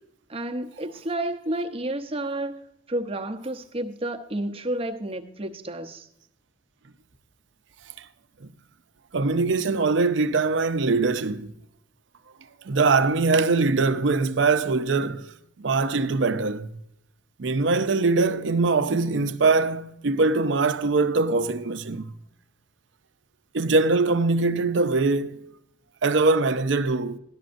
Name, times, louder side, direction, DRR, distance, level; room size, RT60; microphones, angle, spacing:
voice 1, 0.3-6.1, right 1 dB, 30° right, 0.8 m, -31 dB
voice 2, 9.1-11.5 12.7-15.3 15.6-16.7 17.4-22.1 23.5-25.5 26.0-27.2, right 3 dB, 75° right, 0.6 m, -22 dB
14.0 x 11.5 x 2.6 m
head